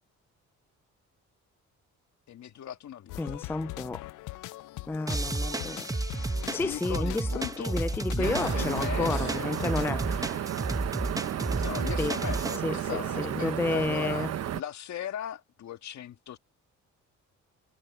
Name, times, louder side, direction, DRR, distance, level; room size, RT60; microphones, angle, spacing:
voice 1, 2.3-3.4 4.7-4.9 5.1-5.3 6.5-7.8 8.1-9.5 11.6-16.4, left 10 dB, 65° left, 1.9 m, -39 dB
sound 1, 3.1-10.0, left 19 dB, 90° left, 0.5 m, -41 dB
voice 2, 3.2-4.0 4.9-5.9 6.5-7.3 7.6-10.5 12.0-12.2 12.6-14.3, left 3 dB, 10° left, 0.4 m, -31 dB
sound 2, 5.1-12.6, right 2 dB, 10° right, 1.0 m, -32 dB
sound 3, 8.2-14.6, right 11 dB, 55° right, 1.0 m, -33 dB
cardioid pair, 90°, 30 cm